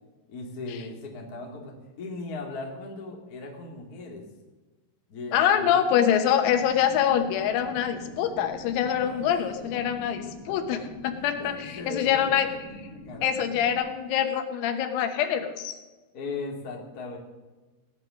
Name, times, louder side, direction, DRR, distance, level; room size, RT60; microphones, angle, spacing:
voice 1, 0.3-4.2 5.1-5.7 9.0-9.2 9.6-9.8 10.5-10.8 11.4-12.5 12.8-13.3 16.1-17.2, left 3 dB, 40° left, -1 dB, 1.3 m, -38 dB
voice 2, 5.3-12.5 13.2-15.7, left 9 dB, 85° left, 7 dB, 3.9 m, -25 dB
sound 1, 6.3-13.8, equal, 50° right, 4.9 m, -45 dB
18.0 x 9.7 x 6.4 m, 1.2 s
omnidirectional pair, 6.0 m